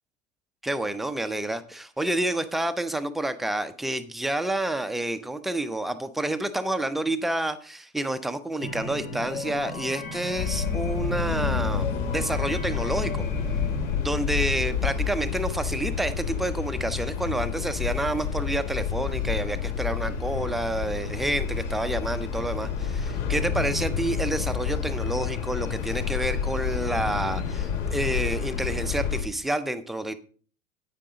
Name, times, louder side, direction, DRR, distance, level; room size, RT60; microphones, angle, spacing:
voice 1, 0.6-13.2 14.0-30.1, right 1 dB, ahead, 10 dB, 0.5 m, -29 dB
sound 1, 8.6-14.0, left 1 dB, 85° left, 2.7 m, -35 dB
sound 2, 10.4-29.2, left 7 dB, 60° left, 2.4 m, -29 dB
9.0 x 9.0 x 3.9 m, 0.43 s
figure-of-eight pair, 85°, 41 cm